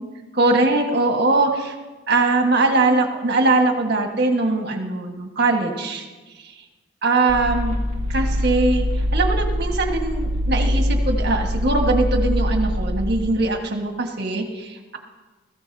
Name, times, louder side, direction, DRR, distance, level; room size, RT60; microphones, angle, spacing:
voice 1, 0.3-1.8 2.1-6.0 6.4-6.5 7.0-7.7 8.1-8.8 9.1-15.0, right 2 dB, 50° right, 2 dB, 1.6 m, -21 dB
sound 1, 7.3-13.2, equal, 70° left, 3.0 m, -23 dB
21.0 x 14.5 x 2.8 m, 1.2 s
head